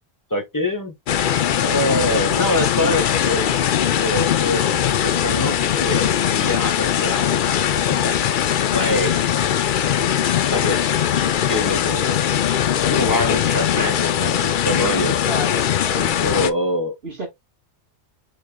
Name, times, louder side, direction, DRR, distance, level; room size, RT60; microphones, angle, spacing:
voice 1, 0.3-0.9 1.6-3.5 4.0-7.5 7.9-8.2 8.7-9.1 10.0-10.2 10.5-12.2 12.9-15.2 16.2-17.0, left 1 dB, 15° left, 1.1 m, -25 dB
sound 1, 1.1-16.5, left 9 dB, 55° left, 0.6 m, -20 dB
voice 2, 14.8-16.4 17.0-17.3, right 2 dB, 60° right, 2.4 m, -31 dB
6.4 x 3.5 x 2.3 m
omnidirectional pair, 1.2 m